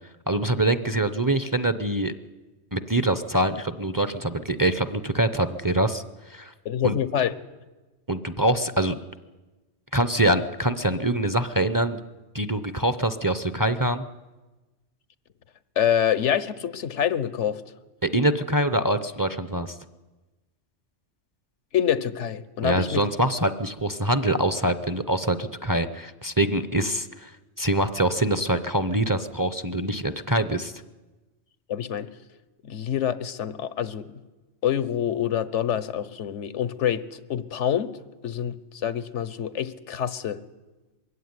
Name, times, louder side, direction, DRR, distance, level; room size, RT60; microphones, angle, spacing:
voice 1, 0.3-2.1 2.7-6.0 6.3-6.5 6.8-6.9 8.1-9.0 9.9-12.0 12.3-14.0 18.0-19.8 22.6-27.3 27.6-30.7, right 1 dB, 20° right, 12 dB, 0.7 m, -24 dB
voice 2, 6.6-7.3 15.8-17.6 21.7-23.1 31.7-32.1 32.6-34.1 34.6-38.0 38.2-40.4, left 9 dB, 90° left, 16 dB, 1.3 m, -26 dB
22.0 x 16.5 x 9.7 m, 1.2 s
omnidirectional pair, 1.2 m